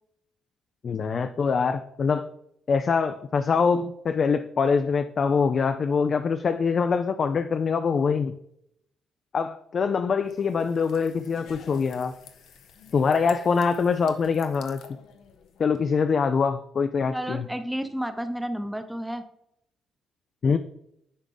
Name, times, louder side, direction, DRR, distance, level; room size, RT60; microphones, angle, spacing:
voice 1, 0.8-2.3 2.7-8.3 9.3-12.1 12.9-14.8 15.6-17.5 20.4-20.6, left 5 dB, 50° left, 9 dB, 0.4 m, -24 dB
sound 1, 10.2-15.8, left 7 dB, 75° left, 0.7 m, -50 dB
voice 2, 17.1-19.2, equal, 5° right, 8 dB, 0.8 m, -31 dB
10.0 x 3.6 x 3.9 m, 0.76 s
cardioid pair, 90°, 0 cm